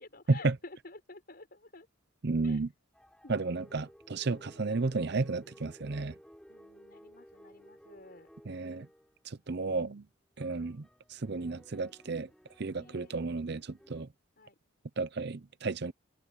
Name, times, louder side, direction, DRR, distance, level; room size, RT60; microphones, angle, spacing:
voice 1, 0.0-1.9 2.4-2.6 3.2-3.5 4.3-4.6 6.5-8.3 10.6-10.8 12.7-13.1 14.4-14.5, left 2 dB, 45° left, 6.0 m, -52 dB
voice 2, 2.2-2.7 3.3-6.1 8.5-8.9 9.3-10.0 10.4-10.8 11.1-12.3 12.6-14.1 15.0-15.9, right 3 dB, 55° right, 0.7 m, -32 dB
sound 1, 2.9-9.3 9.6-9.9 10.3-14.0, equal, 5° left, 7.7 m, -57 dB
open air
head